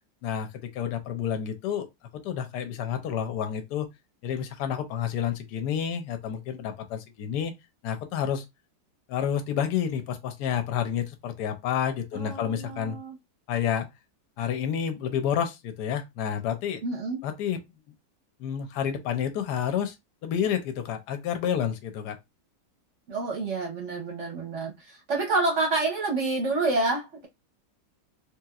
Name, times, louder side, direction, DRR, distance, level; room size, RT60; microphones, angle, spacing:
voice 1, 0.2-1.9 2.2-3.9 4.2-7.5 7.8-8.4 9.1-13.0 13.5-13.9 14.4-16.8 17.2-17.6 18.4-19.9 20.2-22.2, left 8 dB, 70° left, 1.2 m, -29 dB
voice 2, 12.1-13.2 16.8-17.2 23.1-27.3, right 3 dB, 50° right, 1.0 m, -28 dB
3.2 x 2.9 x 2.3 m
omnidirectional pair, 1.9 m